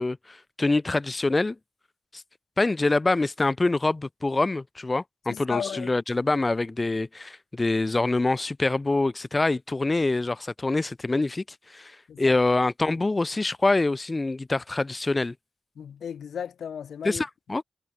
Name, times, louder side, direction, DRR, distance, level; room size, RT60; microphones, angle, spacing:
voice 1, 0.0-1.6 2.1-2.2 2.6-11.4 11.7-11.9 12.2-15.3 17.0-17.6, left 2 dB, 30° left, 1.9 m, -25 dB
voice 2, 5.3-5.9 12.1-12.4 15.7-17.2, left 8 dB, 85° left, 1.7 m, -35 dB
cardioid pair, 55°, 0 cm